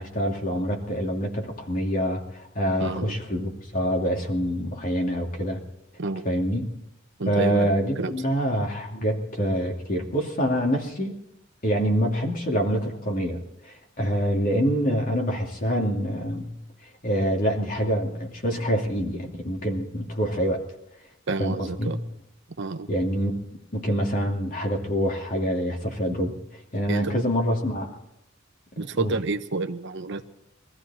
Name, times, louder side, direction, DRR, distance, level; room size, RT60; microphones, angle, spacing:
voice 1, 0.0-5.6 6.2-6.7 7.3-11.1 11.6-16.5 17.0-20.6 21.4-22.0 22.9-23.3 23.7-26.4 26.7-27.9 28.8-29.1, equal, 40° left, 1 dB, 2.7 m, -26 dB
voice 2, 2.8-3.2 6.0-6.2 7.2-8.1 21.3-22.0 22.6-22.9 26.9-27.1 28.8-30.2, right 3 dB, 60° right, 8 dB, 0.9 m, -29 dB
22.5 x 14.0 x 4.3 m, 0.83 s
head